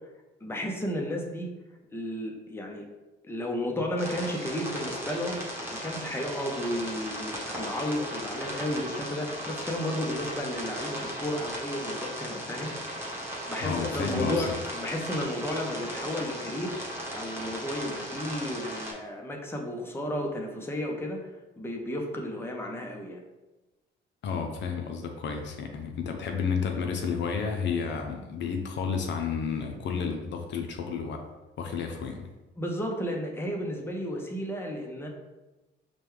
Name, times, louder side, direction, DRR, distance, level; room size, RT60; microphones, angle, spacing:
voice 1, 0.4-1.5 1.9-2.8 3.2-5.4 5.7-12.7 13.4-21.2 21.6-23.2 32.6-35.1, left 1 dB, 10° left, 1 dB, 0.7 m, -33 dB
sound 1, 4.0-18.9, equal, 10° right, 1.1 m, -37 dB
voice 2, 13.6-14.4 24.2-31.3 31.6-32.3, left 6 dB, 65° left, 4 dB, 0.5 m, -31 dB
5.1 x 2.2 x 3.1 m, 1.1 s
cardioid pair, 90°, 20 cm